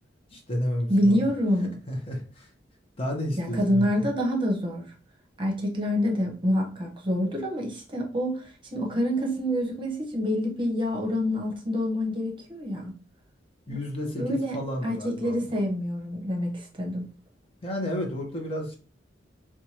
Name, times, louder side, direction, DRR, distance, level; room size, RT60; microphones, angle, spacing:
voice 1, 0.3-1.2 1.9-2.5 3.0-4.1 13.7-15.4 17.6-18.8, left 1 dB, 30° left, 1 dB, 0.8 m, -31 dB
voice 2, 0.9-1.7 3.4-4.8 5.4-12.9 13.7-13.8 14.2-14.6 14.8-17.1, equal, 30° right, -1 dB, 0.9 m, -27 dB
4.5 x 2.3 x 2.8 m, 0.38 s
head